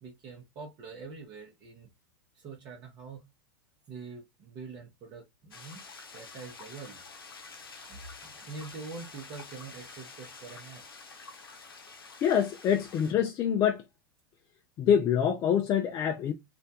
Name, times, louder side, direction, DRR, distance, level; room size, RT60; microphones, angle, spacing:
voice 1, 0.0-1.9 2.3-3.3 3.9-5.9 6.1-7.0 7.9-10.8, right 4 dB, 40° right, 0.8 m, -45 dB
sound 1, 5.5-13.1, left 4 dB, 85° left, 0.7 m, -48 dB
voice 2, 12.2-13.8 14.8-16.3, left 8 dB, 30° left, 0.4 m, -25 dB
2.4 x 2.1 x 2.6 m
hypercardioid pair, 100°, 12 cm